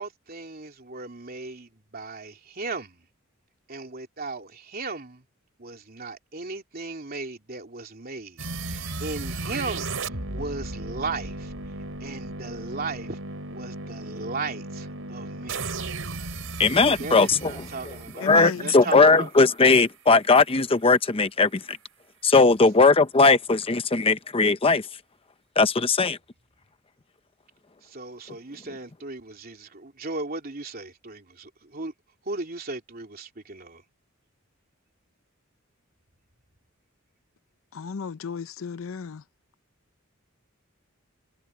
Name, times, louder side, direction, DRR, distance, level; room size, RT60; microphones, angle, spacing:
voice 1, 0.0-3.1 3.7-5.2 5.6-11.5 12.0-13.2 13.5-15.8 17.0-19.3 27.8-31.9 32.2-33.8, right 3 dB, 45° right, 3.2 m, -36 dB
sound 1, 8.4-19.3, right 2 dB, 70° right, 4.7 m, -35 dB
voice 2, 16.6-17.5 18.2-21.8 22.2-24.9 25.6-26.2, left 3 dB, 25° left, 0.7 m, -19 dB
voice 3, 18.2-18.6 37.7-39.2, left 5 dB, 70° left, 0.6 m, -33 dB
head